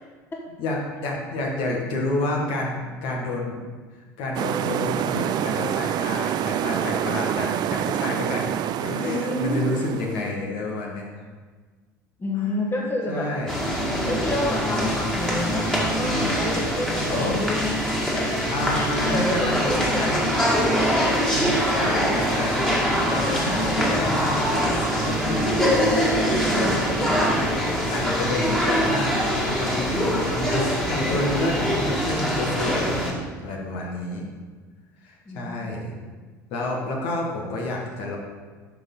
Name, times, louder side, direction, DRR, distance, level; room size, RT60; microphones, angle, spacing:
voice 1, 0.6-3.6 4.2-8.5 8.8-11.1 12.4-12.5 13.1-13.5 17.1-17.7 18.5-19.7 20.0-20.1 21.3-25.4 26.3-26.4 27.3-27.6 27.9-34.2 35.0-35.9 36.5-38.2, left 2 dB, 60° left, -1 dB, 1.7 m, -29 dB
sound 1, 4.3-10.3, right 11 dB, 45° right, 0.4 m, -27 dB
voice 2, 9.0-9.8 12.2-13.3 14.0-17.5 18.1-20.1 25.5-27.2 35.2-35.7, left 1 dB, 20° left, -1 dB, 1.7 m, -29 dB
sound 2, 13.5-33.1, equal, 5° left, 2.2 m, -23 dB
11.0 x 6.1 x 3.8 m, 1.5 s
figure-of-eight pair, 65°, 10 cm